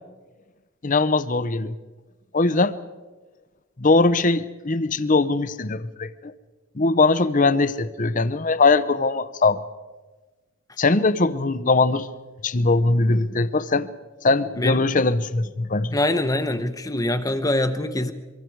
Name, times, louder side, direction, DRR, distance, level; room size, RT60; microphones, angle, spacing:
voice 1, 0.8-1.7 2.3-2.8 3.8-6.3 6.8-9.6 10.8-12.1 12.4-13.9 14.2-16.0, left 3 dB, 35° left, 14 dB, 0.8 m, -21 dB
voice 2, 15.9-18.1, left 1 dB, 15° left, 9 dB, 0.9 m, -23 dB
25.0 x 24.0 x 4.7 m, 1.3 s
head